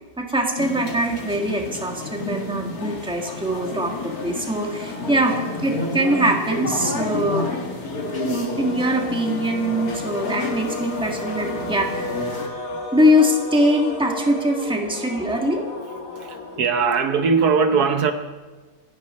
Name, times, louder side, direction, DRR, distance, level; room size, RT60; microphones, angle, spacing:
voice 1, 0.2-7.5 8.2-12.5 12.9-15.6, equal, 5° right, 2 dB, 1.5 m, -22 dB
sound 1, 0.6-12.5, left 2 dB, 60° left, 2.3 m, -30 dB
sound 2, 7.8-17.1, left 2 dB, 80° left, 2.2 m, -33 dB
voice 2, 16.1-18.1, right 5 dB, 70° right, 7 dB, 1.4 m, -20 dB
26.5 x 9.9 x 4.2 m, 1.3 s
omnidirectional pair, 1.7 m